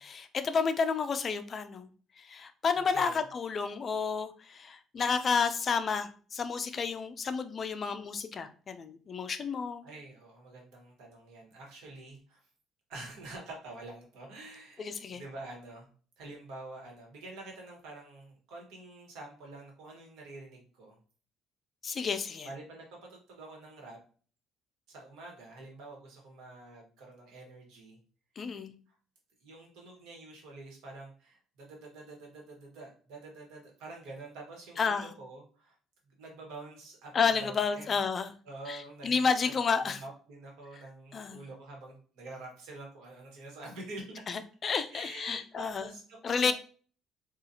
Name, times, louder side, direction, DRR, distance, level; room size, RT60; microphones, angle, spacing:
voice 1, 0.0-1.9 2.2-9.9 14.8-15.2 21.8-22.5 28.4-28.7 34.8-35.1 37.1-38.3 38.7-40.0 41.1-41.4 44.3-45.9 46.2-46.5, left 5 dB, 30° left, 10 dB, 0.3 m, -31 dB
voice 2, 2.7-3.2 9.8-12.4 12.9-15.9 16.2-21.0 22.4-24.0 24.9-28.0 29.4-35.8 36.2-38.0 38.4-39.1 39.4-39.5 40.0-44.2 44.9-46.5, right 2 dB, 85° right, 0 dB, 1.3 m, -47 dB
3.9 x 2.4 x 2.8 m, 0.41 s
cardioid pair, 170°, 0 cm